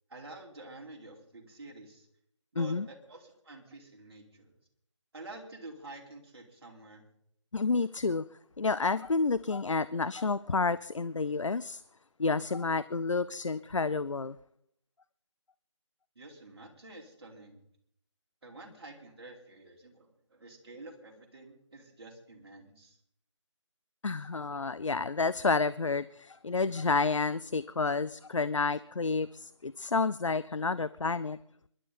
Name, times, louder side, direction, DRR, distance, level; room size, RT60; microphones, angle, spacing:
voice 1, 0.1-2.1 2.5-4.5 5.1-7.0 16.1-17.7 18.4-23.0, right 2 dB, 55° right, 0 dB, 4.3 m, -49 dB
voice 2, 2.6-2.9 7.5-8.2 8.6-11.8 12.2-14.4 24.0-31.4, left 4 dB, 75° left, 17 dB, 0.6 m, -30 dB
27.0 x 12.0 x 4.2 m, 0.70 s
figure-of-eight pair, 155°, 16 cm